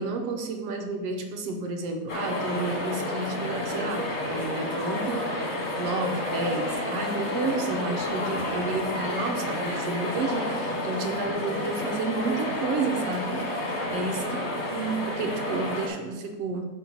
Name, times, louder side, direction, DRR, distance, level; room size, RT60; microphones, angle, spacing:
voice 1, 0.0-5.4 5.8-13.5 13.9-14.4 14.7-16.7, right 3 dB, 70° right, 4 dB, 1.6 m, -31 dB
sound 1, 2.1-15.9, left 1 dB, 55° left, 0.7 m, -30 dB
7.5 x 4.5 x 7.0 m, 1.1 s
omnidirectional pair, 3.5 m